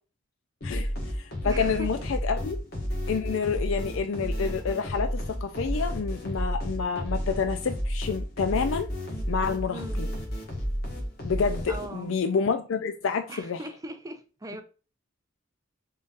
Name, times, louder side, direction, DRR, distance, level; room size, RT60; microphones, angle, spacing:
voice 1, 0.6-2.6 3.1-8.9 9.3-10.1 11.2-13.6, left 5 dB, 75° left, 0.4 m, -28 dB
sound 1, 0.6-12.2, equal, 50° left, 1.5 m, -32 dB
voice 2, 1.4-2.0 9.7-10.0 11.7-12.1 13.3-14.6, right 1 dB, 15° right, 0.5 m, -39 dB
3.9 x 3.7 x 2.4 m
head